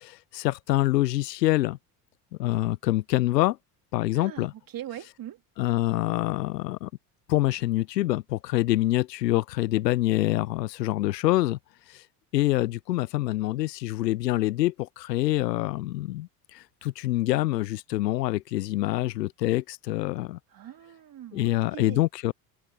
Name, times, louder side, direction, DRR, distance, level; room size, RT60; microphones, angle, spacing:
voice 1, 0.0-1.8 2.4-3.6 3.9-4.5 5.6-6.9 7.3-11.6 11.9-12.0 12.3-20.4 21.3-22.3, left 16 dB, 85° left, 0.6 m, -26 dB
voice 2, 4.1-5.4 20.5-22.0, right 11 dB, 45° right, 3.4 m, -41 dB
open air
hypercardioid pair, 65°, 48 cm